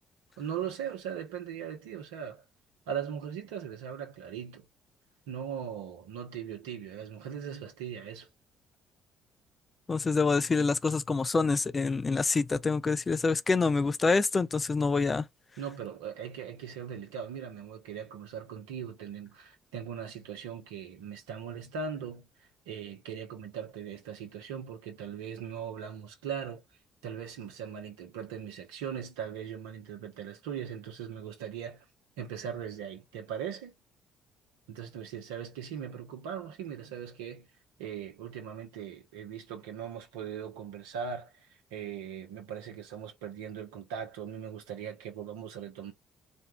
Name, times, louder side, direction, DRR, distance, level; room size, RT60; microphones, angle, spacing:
voice 1, 0.4-2.4 2.9-4.7 5.3-8.3 15.6-26.6 27.0-31.8 32.2-33.7 34.7-37.5 37.8-45.9, right 8 dB, 80° right, 0.9 m, -39 dB
voice 2, 9.9-15.2, left 4 dB, 30° left, 0.5 m, -26 dB
4.4 x 2.3 x 3.1 m
hypercardioid pair, 50°, 0 cm